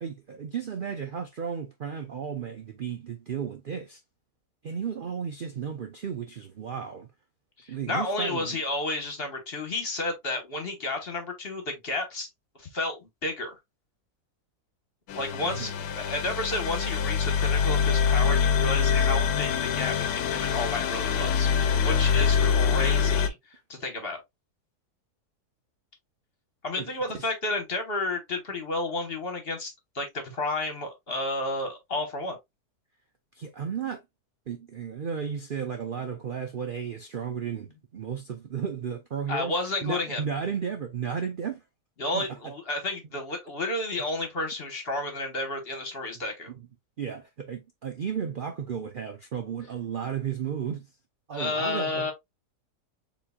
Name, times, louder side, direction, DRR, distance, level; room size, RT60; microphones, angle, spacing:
voice 1, 0.0-4.0 4.6-7.1 7.7-8.6 15.4-15.7 26.8-26.9 27.2-27.3 33.3-34.0 34.5-37.7 37.9-39.5 39.8-41.6 42.1-42.5 46.1-46.7 47.0-50.9 51.3-52.1, right 7 dB, 75° right, 0.4 m, -34 dB
voice 2, 7.6-12.3 12.6-13.6 15.1-23.4 23.7-24.2 26.6-32.4 39.3-40.2 42.0-46.5 51.3-52.1, left 2 dB, 40° left, 1.4 m, -31 dB
sound 1, 15.1-23.3, left 6 dB, 85° left, 1.3 m, -24 dB
6.9 x 3.0 x 2.2 m
omnidirectional pair, 1.7 m